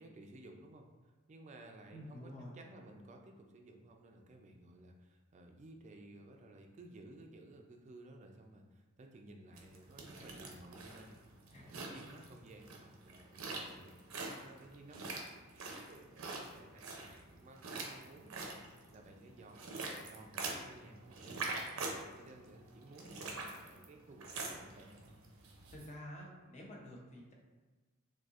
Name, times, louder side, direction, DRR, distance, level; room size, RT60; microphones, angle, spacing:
voice 1, 0.0-11.1 11.5-21.4 21.7-25.2, right 2 dB, 35° right, 3 dB, 0.4 m, -56 dB
voice 2, 1.9-2.5 11.5-11.8 12.6-12.7 25.7-27.3, equal, 35° left, -2 dB, 0.6 m, -50 dB
sound 1, 9.5-25.9, right 3 dB, 85° right, 0.6 m, -45 dB
4.1 x 2.6 x 2.4 m, 1.3 s
head